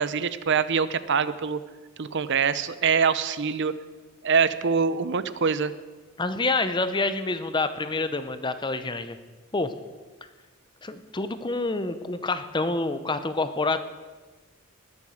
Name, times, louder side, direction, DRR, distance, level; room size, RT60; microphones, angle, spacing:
voice 1, 0.0-1.6 2.0-3.7 4.2-5.7, right 6 dB, 55° right, 14 dB, 0.7 m, -24 dB
voice 2, 6.2-9.2 9.5-9.7 10.8-13.8, left 3 dB, 20° left, 11 dB, 0.7 m, -27 dB
20.5 x 7.1 x 6.4 m, 1.3 s
head